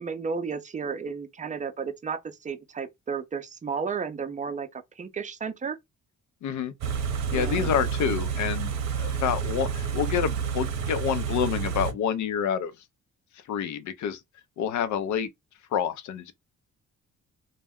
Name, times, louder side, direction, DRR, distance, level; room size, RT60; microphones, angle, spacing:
voice 1, 0.0-5.8 7.3-7.7, right 5 dB, 25° right, 0.5 m, -33 dB
voice 2, 6.4-6.7 7.3-8.7 9.0-12.8 13.3-14.2 14.6-15.3 15.7-16.3, left 8 dB, 70° left, 0.5 m, -28 dB
Car / Idling, 6.8-11.9, right 6 dB, 60° right, 0.7 m, -29 dB
2.1 x 2.1 x 3.4 m
cardioid pair, 90°, 30 cm